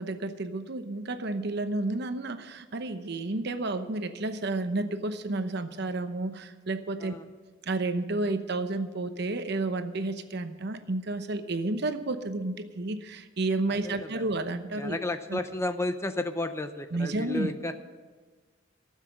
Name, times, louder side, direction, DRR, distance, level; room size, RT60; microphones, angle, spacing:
voice 1, 0.0-7.1 7.6-15.0 15.3-15.4 16.9-17.5, right 2 dB, 55° right, 9 dB, 0.9 m, -31 dB
voice 2, 13.7-14.3 14.8-17.7, left 2 dB, 15° left, 9 dB, 0.6 m, -32 dB
14.0 x 7.4 x 8.7 m, 1.4 s
head